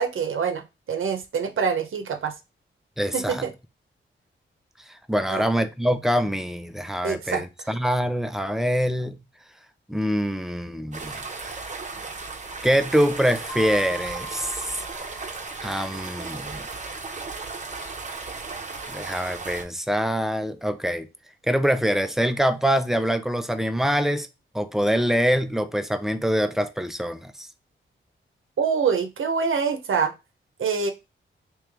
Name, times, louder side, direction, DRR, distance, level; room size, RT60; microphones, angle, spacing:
voice 1, 0.0-2.3 3.1-3.5 5.3-5.4 7.0-7.4 28.6-30.1 30.6-30.9, right 6 dB, 75° right, 0.8 m, -25 dB
voice 2, 3.0-3.5 4.9-9.2 9.9-11.2 12.6-14.8 15.6-16.6 18.9-21.1 21.5-24.3 24.5-27.5, equal, ahead, 0.4 m, -24 dB
sound 1, 10.9-19.6, right 4 dB, 35° right, 0.7 m, -35 dB
Mallet percussion, 13.5-16.1, right 3 dB, 75° left, 1.0 m, -40 dB
3.2 x 3.0 x 3.4 m
cardioid pair, 70°, 21 cm